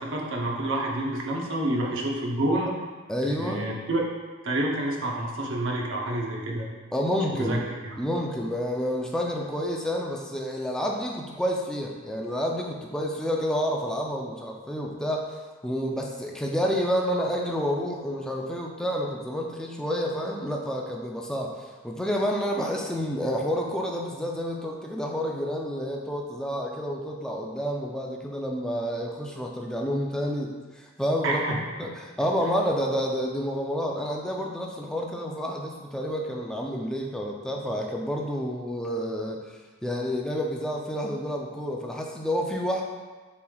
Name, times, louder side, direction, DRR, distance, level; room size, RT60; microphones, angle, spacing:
voice 1, 0.0-2.7 3.2-4.0 4.4-6.7 7.3-8.0 31.2-31.6, right 1 dB, 65° right, -1 dB, 0.7 m, -28 dB
voice 2, 3.1-3.7 6.9-7.6 8.0-15.3 15.6-42.8, equal, 5° left, -1 dB, 0.4 m, -29 dB
6.8 x 3.2 x 2.3 m, 1.3 s
head